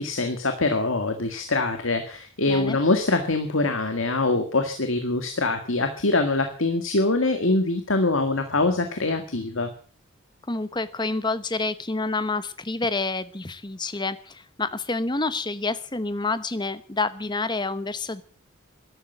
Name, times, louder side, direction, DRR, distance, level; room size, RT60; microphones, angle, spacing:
voice 1, 0.0-9.7, left 2 dB, 70° left, 6 dB, 1.9 m, -24 dB
voice 2, 10.5-18.2, left 3 dB, 20° left, 14 dB, 1.0 m, -28 dB
13.5 x 12.0 x 8.0 m, 0.43 s
head